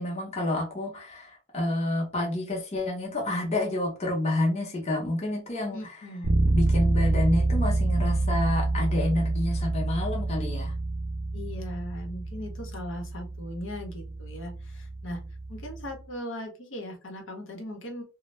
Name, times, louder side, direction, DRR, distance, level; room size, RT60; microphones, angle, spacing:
voice 1, 0.0-6.1 6.5-10.7, left 1 dB, 35° left, -1 dB, 0.7 m, -29 dB
voice 2, 5.7-6.4 11.3-15.2 15.5-18.0, left 1 dB, 65° left, 2 dB, 0.8 m, -38 dB
Bass guitar, 6.2-15.9, right 2 dB, 60° right, 0.5 m, -27 dB
2.6 x 2.0 x 3.1 m, 0.32 s
head